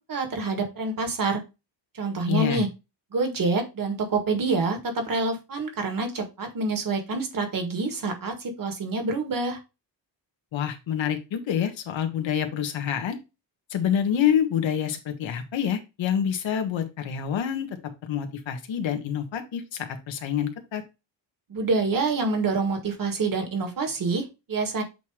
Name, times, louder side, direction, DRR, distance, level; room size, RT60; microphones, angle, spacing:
voice 1, 0.1-1.4 1.9-2.7 3.1-9.6 21.5-24.8, right 3 dB, 45° right, 1.9 m, -27 dB
voice 2, 2.3-2.6 10.5-13.2 13.7-17.7 18.0-20.8, left 9 dB, 90° left, 1.4 m, -27 dB
8.0 x 3.0 x 4.9 m
wide cardioid pair, 145°, 44 cm